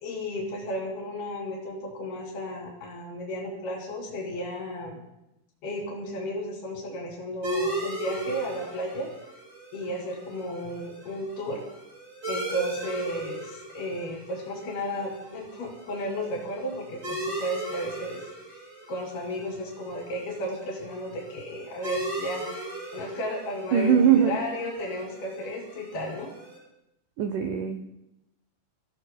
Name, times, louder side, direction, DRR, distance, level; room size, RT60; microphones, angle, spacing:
voice 1, 0.0-5.0 5.6-9.1 9.7-11.6 12.3-18.2 18.5-18.6 18.9-22.7 22.9-26.3, equal, 85° left, -1 dB, 4.8 m, -33 dB
sound 1, 7.4-26.6, right 1 dB, 30° right, 7.1 m, -38 dB
voice 2, 23.7-24.4 27.2-27.8, right 8 dB, 80° right, 6 dB, 1.8 m, -21 dB
29.5 x 15.5 x 2.3 m, 0.89 s
omnidirectional pair, 4.5 m